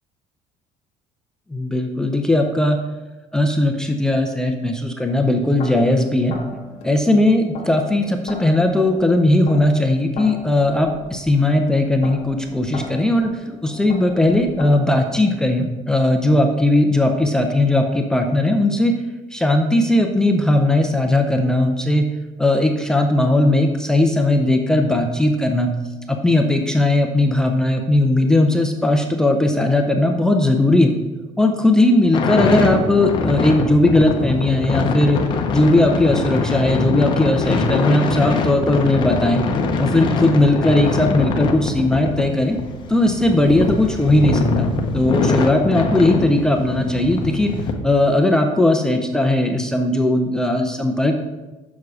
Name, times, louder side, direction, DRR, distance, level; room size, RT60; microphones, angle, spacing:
voice 1, 1.5-2.8 3.3-6.3 6.8-18.9 19.3-22.1 22.4-25.7 26.2-30.9 31.4-35.2 35.5-39.4 39.8-42.6 42.9-47.5 47.8-51.1, left 1 dB, 5° left, 3 dB, 0.5 m, -18 dB
sound 1, 5.1-15.2, left 2 dB, 55° left, 1.6 m, -38 dB
sound 2, 32.1-47.7, left 4 dB, 35° left, 0.8 m, -23 dB
7.2 x 6.3 x 4.7 m, 1.1 s
cardioid pair, 170°, 13 cm